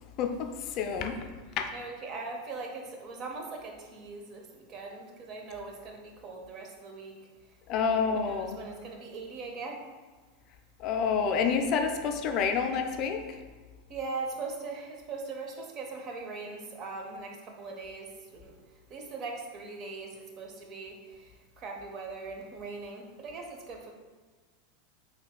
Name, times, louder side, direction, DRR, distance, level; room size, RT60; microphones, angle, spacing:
voice 1, 0.2-1.2 1.6-1.7 7.7-8.6 10.8-13.2, left 6 dB, 50° left, 6 dB, 0.3 m, -28 dB
voice 2, 1.7-7.2 7.8-9.8 13.9-18.5 18.9-23.9, right 3 dB, 45° right, 1 dB, 0.6 m, -40 dB
4.0 x 2.8 x 2.2 m, 1.4 s
hypercardioid pair, 95°, 0 cm